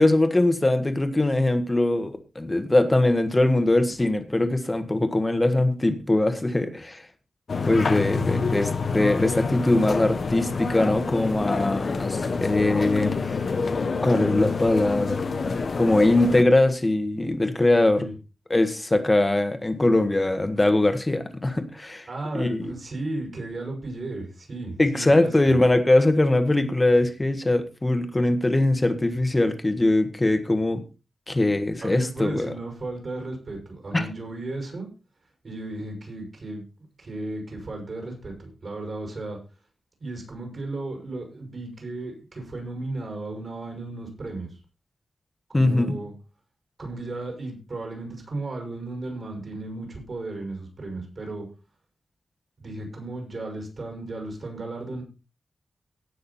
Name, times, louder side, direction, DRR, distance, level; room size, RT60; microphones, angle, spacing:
voice 1, 0.0-7.0 7.6-13.4 14.0-15.2 15.8-18.1 18.5-22.1 22.3-22.7 24.8-30.8 31.3-32.5 33.9-34.1 45.5-46.0, left 2 dB, 20° left, 8 dB, 1.5 m, -22 dB
sound 1, 7.5-16.4, left 4 dB, 50° left, 1.1 m, -27 dB
voice 2, 8.1-8.4 18.0-18.1 22.1-25.6 31.8-34.9 35.4-36.6 37.0-39.4 40.0-44.6 45.5-46.1 46.8-51.5 52.6-55.0, right 2 dB, 45° right, 2 dB, 6.2 m, -35 dB
17.5 x 6.5 x 4.2 m, 0.31 s
wide cardioid pair, 145°, 0 cm